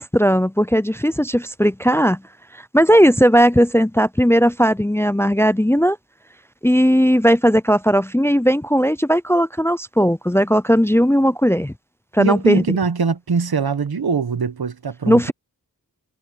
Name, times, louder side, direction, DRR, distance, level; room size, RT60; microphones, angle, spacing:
voice 1, 0.0-2.2 2.7-6.0 6.6-11.7 12.1-12.6 15.1-15.3, equal, 5° left, 0.4 m, -17 dB
voice 2, 12.2-15.3, right 5 dB, 85° right, 1.1 m, -22 dB
wide cardioid pair, 60°, 37 cm